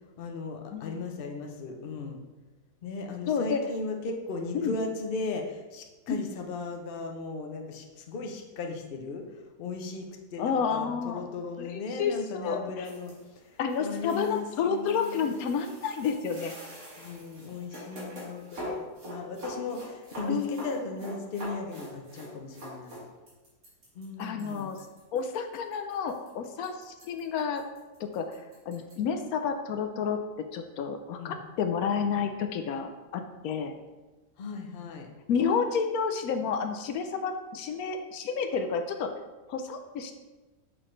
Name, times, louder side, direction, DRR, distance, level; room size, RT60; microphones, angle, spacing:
voice 1, 0.2-2.2 2.8-15.3 17.0-23.0 23.9-24.7 31.2-31.3 34.4-35.1, left 3 dB, 50° left, 3 dB, 0.8 m, -37 dB
voice 2, 3.3-3.6 4.5-4.7 6.1-6.2 10.4-11.3 11.6-12.9 13.6-16.5 20.3-20.7 24.2-24.8 25.1-27.6 28.0-30.2 30.5-33.7 35.3-39.1 39.5-40.1, left 6 dB, 75° left, 6 dB, 1.0 m, -30 dB
sound 1, 12.8-29.0, equal, 70° right, 2.3 m, -44 dB
6.3 x 6.0 x 3.2 m, 1.2 s
omnidirectional pair, 1.6 m